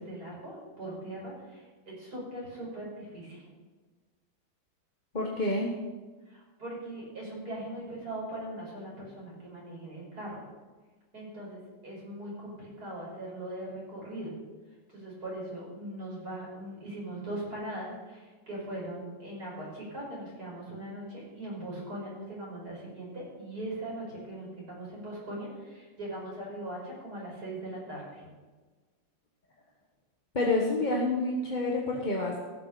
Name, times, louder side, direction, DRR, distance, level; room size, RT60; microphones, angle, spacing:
voice 1, 0.0-3.4 6.3-10.4 11.1-14.3 14.9-28.3, right 1 dB, 50° right, -5 dB, 6.2 m, -40 dB
voice 2, 5.1-5.7 30.3-32.4, left 2 dB, 25° left, -2 dB, 1.2 m, -28 dB
16.0 x 7.0 x 6.8 m, 1.3 s
omnidirectional pair, 2.2 m